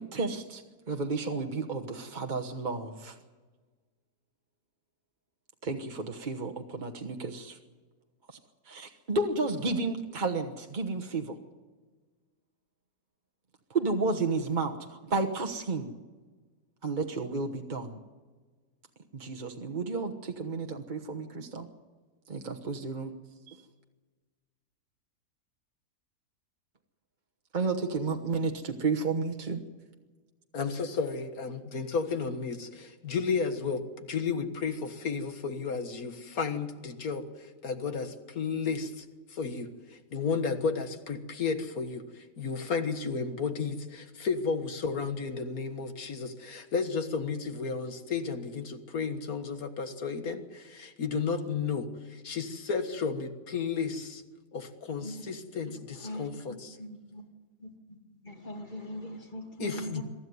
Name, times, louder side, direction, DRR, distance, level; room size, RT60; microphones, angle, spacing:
voice 1, 0.0-3.2 5.6-7.6 8.3-8.4 8.6-11.4 13.7-15.9 16.8-18.0 19.1-21.7 22.3-23.1 23.5-23.6 27.5-29.6, right 3 dB, 35° right, 4 dB, 1.2 m, -32 dB
voice 2, 30.5-39.7 40.1-54.2 54.5-56.8 59.6-60.0, left 5 dB, 70° left, 8 dB, 2.0 m, -33 dB
voice 3, 55.6-57.3 57.6-58.0 58.2-60.0, equal, 30° left, 4 dB, 2.3 m, -41 dB
23.5 x 13.5 x 9.4 m, 1.4 s
omnidirectional pair, 1.6 m